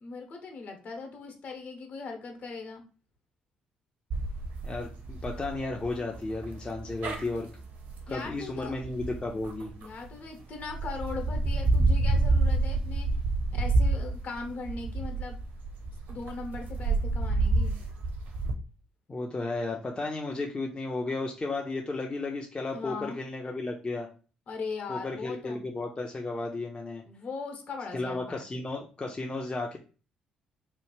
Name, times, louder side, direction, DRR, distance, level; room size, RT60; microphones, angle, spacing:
voice 1, 0.0-2.8 8.1-8.8 9.8-13.1 13.5-15.4 16.1-17.8 22.7-23.2 24.5-25.6 27.0-28.5, left 4 dB, 50° left, 3 dB, 1.1 m, -39 dB
sound 1, 4.1-10.1 10.6-18.5, right 2 dB, 60° right, 0.7 m, -28 dB
voice 2, 4.6-7.5 8.1-9.7 19.1-24.1 24.9-27.0 27.9-29.8, left 2 dB, 25° left, 0 dB, 0.6 m, -34 dB
3.1 x 2.2 x 3.1 m, 0.36 s
hypercardioid pair, 45°, 3 cm